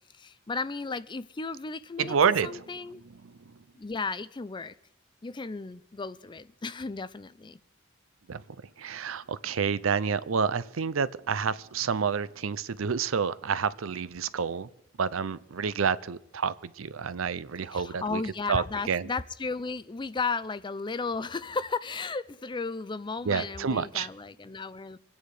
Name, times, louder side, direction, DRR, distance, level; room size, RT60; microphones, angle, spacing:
voice 1, 0.1-2.2 2.4-3.0 3.7-4.8 5.2-7.6 17.7-25.0, left 4 dB, 25° left, 0.5 m, -34 dB
voice 2, 2.0-2.6 3.2-3.5 8.3-8.4 8.8-14.7 15.0-18.2 18.5-19.1 23.2-24.1, right 6 dB, 80° right, 0.6 m, -29 dB
25.0 x 9.2 x 4.9 m
head